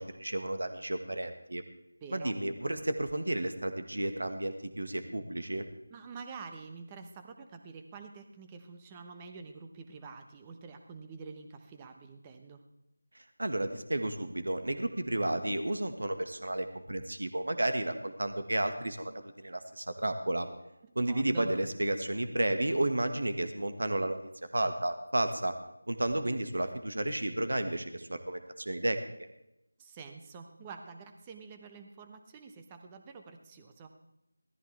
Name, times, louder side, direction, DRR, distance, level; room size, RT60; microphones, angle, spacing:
voice 1, 0.0-1.6 2.1-5.7 13.4-20.5 21.0-24.2 24.5-25.5 25.9-29.0, right 1 dB, 70° right, 7 dB, 1.7 m, -32 dB
voice 2, 2.0-2.4 5.9-12.6 20.8-21.5 29.8-33.9, right 4 dB, 15° right, 5 dB, 1.0 m, -47 dB
18.0 x 14.0 x 3.5 m, 0.84 s
figure-of-eight pair, 165°, 0 cm